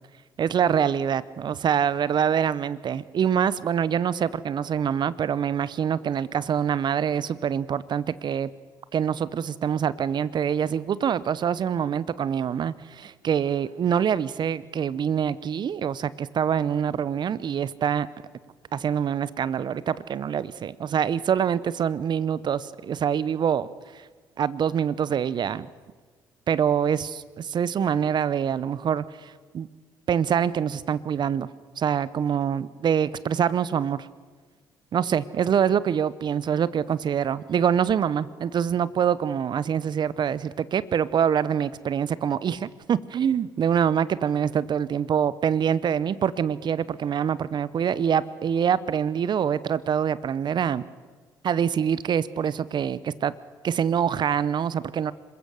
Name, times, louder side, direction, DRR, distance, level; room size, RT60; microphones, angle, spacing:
voice 1, 0.4-8.5 8.9-18.1 18.7-23.7 24.4-25.7 26.5-29.7 30.1-31.5 31.8-34.1 34.9-50.8 51.4-53.3 53.6-55.1, right 8 dB, 55° right, 18 dB, 0.8 m, -25 dB
26.5 x 15.5 x 6.4 m, 1.5 s
hypercardioid pair, 50°, 9 cm